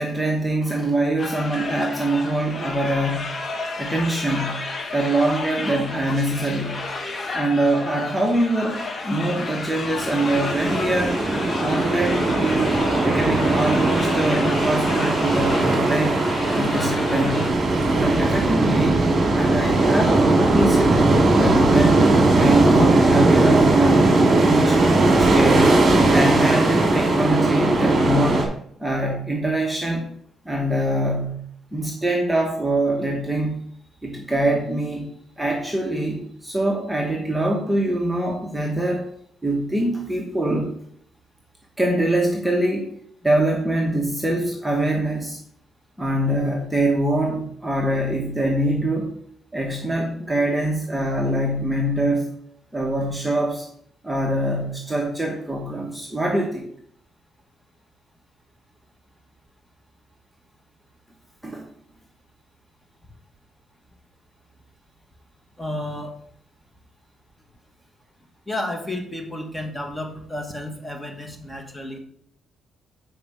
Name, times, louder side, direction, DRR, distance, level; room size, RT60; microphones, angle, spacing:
voice 1, 0.0-3.3 3.8-4.6 4.9-6.8 7.3-11.2 11.6-12.7 13.0-16.2 16.5-17.5 18.0-19.0 19.3-22.1 22.3-25.8 26.1-28.5 28.8-30.1 30.4-33.6 34.0-35.1 35.4-39.1 39.4-40.7 41.8-42.9 43.2-45.4 46.0-49.1 49.5-52.3 52.7-53.7 54.0-56.7 61.4-61.7, right 1 dB, 5° right, 0 dB, 1.3 m, -24 dB
sound 1, 1.2-17.5, left 3 dB, 40° left, 1.3 m, -32 dB
sound 2, 9.8-28.4, right 2 dB, 40° right, 2.5 m, -19 dB
voice 2, 65.6-66.1 68.5-72.0, left 1 dB, 10° left, 3 dB, 1.6 m, -31 dB
7.7 x 4.9 x 4.9 m, 0.65 s
cardioid pair, 90°, 0 cm